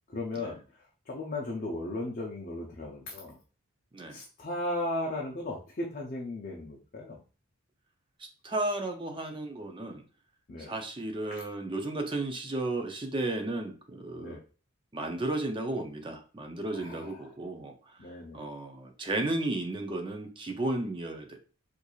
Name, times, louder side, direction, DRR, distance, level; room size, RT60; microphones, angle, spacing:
voice 1, 0.1-0.6 1.1-3.4 4.1-7.2 10.5-10.7 11.3-11.4 14.1-14.4 16.7-17.3 18.0-18.5, left 2 dB, 40° left, -2 dB, 0.6 m, -36 dB
voice 2, 8.4-10.0 10.6-14.4 14.9-21.4, right 2 dB, 20° right, 4 dB, 0.5 m, -34 dB
4.5 x 2.6 x 2.3 m, 0.37 s
head